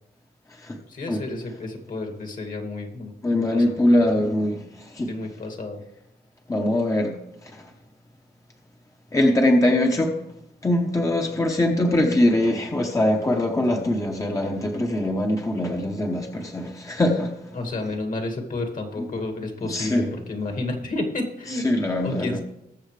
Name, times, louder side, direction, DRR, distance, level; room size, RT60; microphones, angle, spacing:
voice 1, 0.7-3.8 5.1-5.8 17.5-21.7 22.0-22.4, left 2 dB, 50° left, 3 dB, 2.2 m, -31 dB
voice 2, 3.2-5.1 6.5-7.7 9.1-10.2 10.6-17.5 19.6-20.1 21.5-22.4, left 1 dB, 20° left, 2 dB, 1.0 m, -22 dB
21.0 x 7.1 x 3.3 m, 0.89 s
wide cardioid pair, 150°, 17 cm